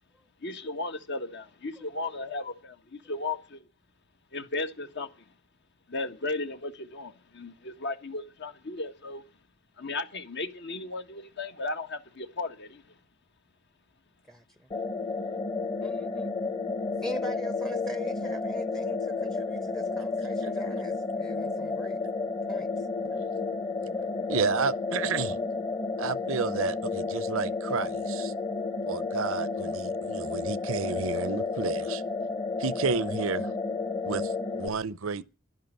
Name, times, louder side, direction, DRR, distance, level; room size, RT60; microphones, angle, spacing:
voice 1, 0.4-3.6 4.3-5.1 5.9-9.2 9.8-12.8, left 2 dB, 55° left, 1.6 m, -35 dB
sound 1, 14.7-34.7, left 4 dB, 25° left, 1.4 m, -31 dB
voice 2, 15.8-16.3 17.0-22.0 22.5-22.7, right 1 dB, ahead, 0.8 m, -41 dB
voice 3, 24.3-25.4 26.0-28.3 28.8-32.0 32.6-33.5 34.0-35.3, right 5 dB, 70° right, 0.7 m, -31 dB
12.0 x 11.0 x 9.1 m
head